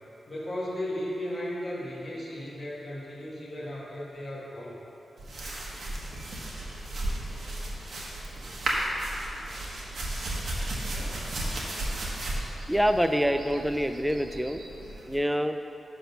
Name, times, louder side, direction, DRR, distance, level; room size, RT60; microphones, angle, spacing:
voice 1, 0.3-4.8, left 1 dB, 25° left, -6 dB, 1.6 m, -35 dB
sound 1, 5.2-15.2, right 1 dB, 55° right, 1.2 m, -34 dB
voice 2, 12.7-14.6 15.1-15.6, equal, ahead, 8 dB, 0.3 m, -26 dB
10.5 x 3.6 x 5.8 m, 2.9 s
wide cardioid pair, 155°, 0 cm